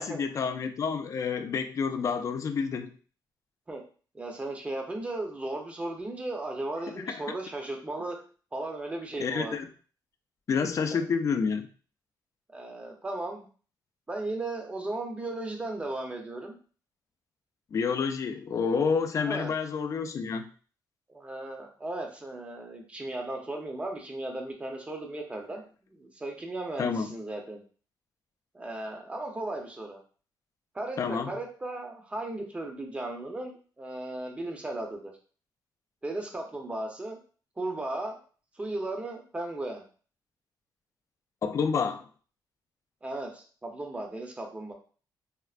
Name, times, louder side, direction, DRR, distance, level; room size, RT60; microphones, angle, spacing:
voice 1, 0.0-2.9 7.0-7.2 9.2-9.7 10.5-11.7 17.7-20.5 26.8-27.1 31.0-31.3 41.4-42.1, left 5 dB, 40° left, 8 dB, 0.4 m, -29 dB
voice 2, 4.1-8.2 8.5-9.6 10.8-11.0 12.5-13.4 14.1-16.6 19.2-19.5 21.1-25.6 25.9-27.6 28.5-30.0 30.7-35.1 36.0-37.2 37.6-38.2 38.5-39.8 43.0-44.7, right 2 dB, 15° right, 2 dB, 0.6 m, -36 dB
4.2 x 2.0 x 2.4 m, 0.40 s
cardioid pair, 125°, 8 cm